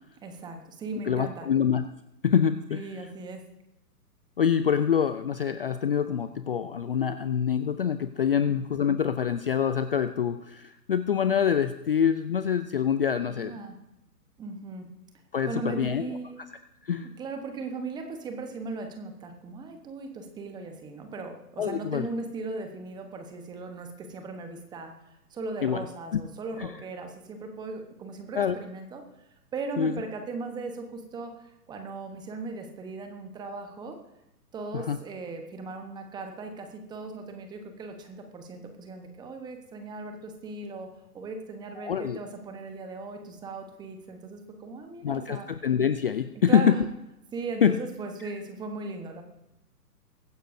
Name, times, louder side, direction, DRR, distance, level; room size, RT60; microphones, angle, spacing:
voice 1, 0.2-1.5 2.7-3.4 8.3-8.6 13.3-13.8 14.4-14.9 15.4-16.4 17.0-24.9 25.3-29.0 29.5-34.0 34.5-40.9 41.1-45.5 46.5-46.8 47.3-49.2, right 3 dB, 10° right, 5 dB, 1.0 m, -38 dB
voice 2, 1.0-1.8 2.2-2.8 4.4-13.5 15.3-16.2 16.8-17.1 21.6-22.1 25.6-25.9 26.1-26.2 26.6-26.7 28.4-28.6 29.8-29.9 34.7-35.0 41.8-42.2 45.0-46.8 47.6-47.8, left 8 dB, 40° left, 10 dB, 0.5 m, -25 dB
22.5 x 10.0 x 2.6 m, 0.91 s
hypercardioid pair, 140°, 48 cm